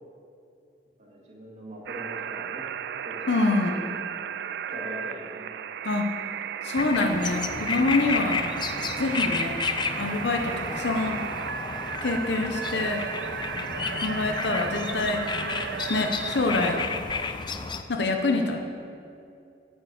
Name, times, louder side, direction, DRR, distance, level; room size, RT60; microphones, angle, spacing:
voice 1, 1.0-2.7 3.0-3.6 4.7-5.5, equal, 40° right, -2 dB, 2.0 m, -41 dB
sound 1, 1.9-16.9, right 8 dB, 65° right, 0.3 m, -35 dB
voice 2, 3.3-3.8 5.8-6.1 6.6-8.5 9.0-9.6 10.0-11.3 12.0-13.1 14.0-16.8 17.2-17.3 17.9-18.6, left 2 dB, 70° left, 3 dB, 0.8 m, -26 dB
sound 2, 6.8-17.8, left 4 dB, 25° left, 0.5 m, -32 dB
8.7 x 6.8 x 8.2 m, 2.6 s
head